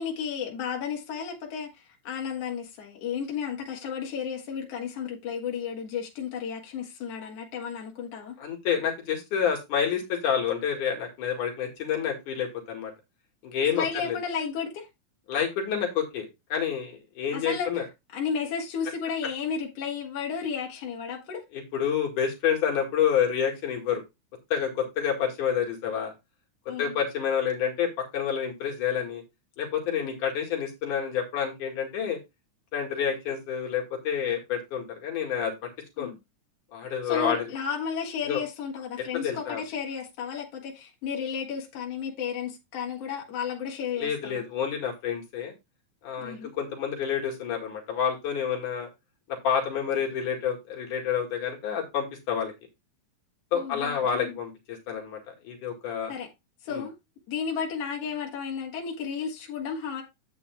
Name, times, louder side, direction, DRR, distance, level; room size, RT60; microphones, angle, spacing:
voice 1, 0.0-1.7 2.0-8.4 13.8-14.9 17.3-17.7 18.1-21.4 26.7-27.0 30.0-30.1 36.0-36.2 37.0-44.4 46.2-46.5 53.5-54.4 56.1-56.3 56.6-56.9 57.3-60.0, left 6 dB, 55° left, 2.7 m, -33 dB
voice 2, 8.4-12.9 13.4-14.2 15.3-17.9 21.5-24.0 24.5-26.1 26.8-29.2 29.6-32.2 32.7-35.7 36.0-36.1 36.7-37.5 38.2-38.4 39.1-39.6 44.0-45.5 46.0-48.9 49.3-52.5 53.5-56.1 56.7-56.8, left 8 dB, 70° left, 3.3 m, -28 dB
9.7 x 8.3 x 2.3 m
omnidirectional pair, 3.7 m